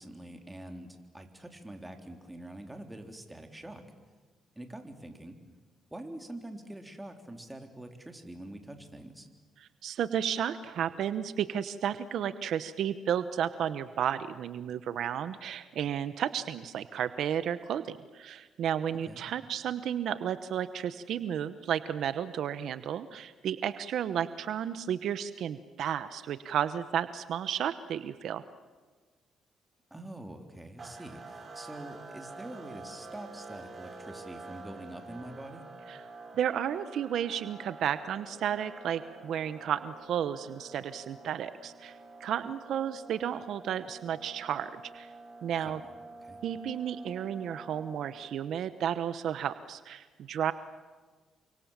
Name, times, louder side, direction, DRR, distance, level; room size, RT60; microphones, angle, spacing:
voice 1, 0.0-3.8 4.5-5.4 5.9-9.3 19.1-19.2 29.9-35.7 45.6-45.7 46.2-46.4, right 1 dB, 10° right, 5 dB, 3.8 m, -45 dB
voice 2, 9.6-28.4 35.9-36.0 36.3-45.1 45.4-45.8 46.4-50.5, right 9 dB, 70° right, 13 dB, 1.0 m, -33 dB
sound 1, 30.8-48.6, right 3 dB, 40° right, 4.7 m, -48 dB
29.0 x 25.5 x 7.5 m, 1.4 s
cardioid pair, 90°, 0 cm